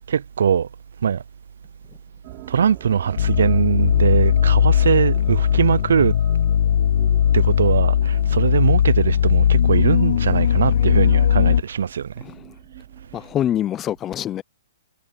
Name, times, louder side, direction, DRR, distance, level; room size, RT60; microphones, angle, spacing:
voice 1, 0.1-0.7 1.0-1.2 2.5-6.1 7.3-12.1, right 7 dB, 75° right, 0.5 m, -21 dB
sound 1, 2.2-13.6, right 33 dB, 40° right, 6.5 m, -43 dB
sound 2, 3.2-11.6, left 9 dB, 65° left, 0.3 m, -18 dB
voice 2, 13.1-14.4, left 11 dB, 20° left, 0.6 m, -24 dB
hypercardioid pair, 140°, 0 cm